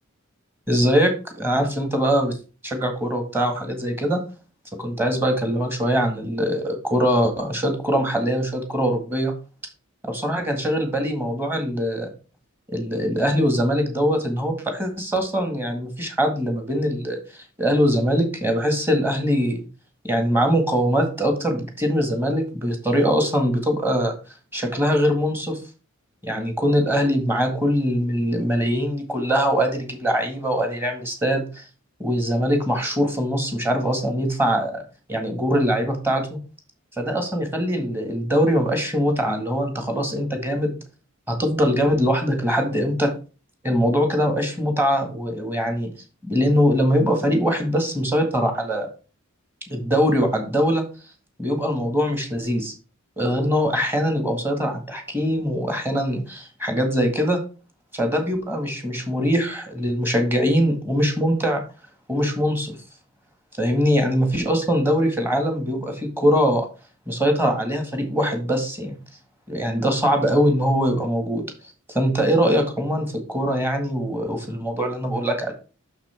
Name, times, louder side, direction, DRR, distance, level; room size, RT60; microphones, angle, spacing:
voice 1, 0.7-2.4 2.6-4.2 4.8-9.3 10.0-12.1 12.7-17.2 17.6-19.6 20.0-24.2 24.5-25.6 26.2-31.6 32.0-34.8 35.1-36.4 37.0-40.8 41.3-43.1 43.6-45.9 46.2-48.9 49.7-50.8 51.4-52.7 53.2-57.4 57.9-61.6 62.1-62.7 63.6-66.7 67.1-69.0 69.5-71.4 71.9-75.5, equal, 10° right, 4 dB, 1.8 m, -22 dB
6.5 x 6.0 x 4.4 m, 0.34 s
head